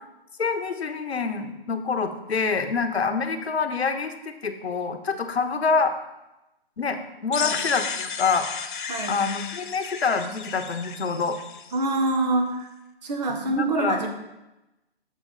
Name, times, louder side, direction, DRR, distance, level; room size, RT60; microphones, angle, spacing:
voice 1, 0.4-5.9 6.8-8.5 9.1-11.4 13.5-14.0, left 5 dB, 85° left, 8 dB, 0.9 m, -26 dB
sound 1, 7.3-12.2, left 7 dB, 55° left, 0.6 m, -34 dB
voice 2, 8.9-9.2 11.7-12.7 13.0-14.1, right 2 dB, 45° right, 4 dB, 1.1 m, -25 dB
7.1 x 5.0 x 4.0 m, 0.94 s
hypercardioid pair, 145°, 31 cm